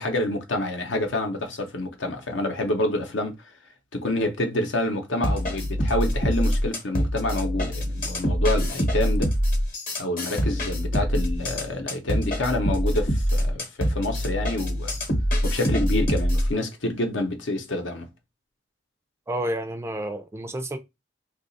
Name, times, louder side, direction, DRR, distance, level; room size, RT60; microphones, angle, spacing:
voice 1, 0.0-3.3 3.9-9.3 10.0-14.9 15.4-18.1, left 1 dB, 75° left, 0.8 m, -27 dB
sound 1, 5.2-16.5, equal, 50° left, 1.0 m, -25 dB
voice 2, 19.3-20.8, right 1 dB, 15° right, 0.4 m, -30 dB
2.8 x 2.4 x 4.0 m
head